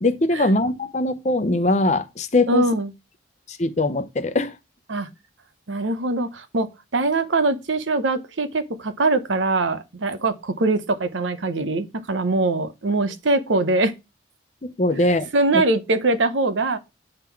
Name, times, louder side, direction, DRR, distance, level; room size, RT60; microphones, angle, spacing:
voice 1, 0.0-2.7 3.5-4.5 14.6-15.6, left 2 dB, 40° left, 0.7 m, -22 dB
voice 2, 2.5-2.9 4.9-5.1 5.7-6.7 6.9-13.9 15.3-16.8, right 2 dB, 85° right, 0.9 m, -22 dB
8.9 x 3.8 x 4.5 m
head